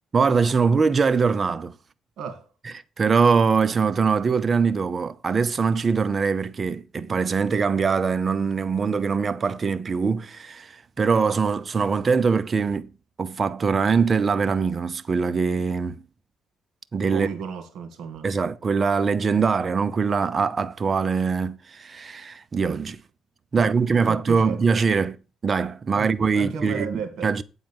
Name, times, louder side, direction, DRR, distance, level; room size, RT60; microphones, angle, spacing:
voice 1, 0.1-1.7 3.0-12.9 13.2-16.0 16.9-17.3 18.2-23.0 23.5-25.2 25.4-26.9 27.2-27.4, right 5 dB, 40° right, 0.7 m, -22 dB
voice 2, 17.1-18.3 23.6-24.6 25.9-27.3, right 6 dB, 75° right, 2.1 m, -34 dB
8.9 x 4.0 x 7.2 m
cardioid pair, 90°, 0 cm